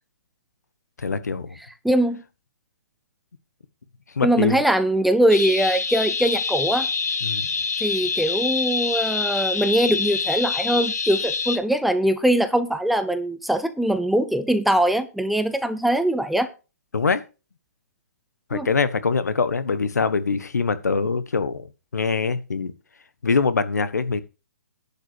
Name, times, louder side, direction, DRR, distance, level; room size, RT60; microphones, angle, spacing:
voice 1, 1.0-1.6 4.1-4.6 7.2-7.5 16.9-17.2 18.5-21.7 21.9-22.7 23.2-24.2, left 4 dB, 90° left, 1.2 m, -23 dB
voice 2, 1.8-2.2 4.2-6.9 7.8-16.5 18.5-18.7, right 1 dB, ahead, 0.7 m, -22 dB
sound 1, 5.3-11.6, left 5 dB, 70° left, 1.5 m, -26 dB
11.0 x 5.6 x 6.2 m
hypercardioid pair, 150°, 9 cm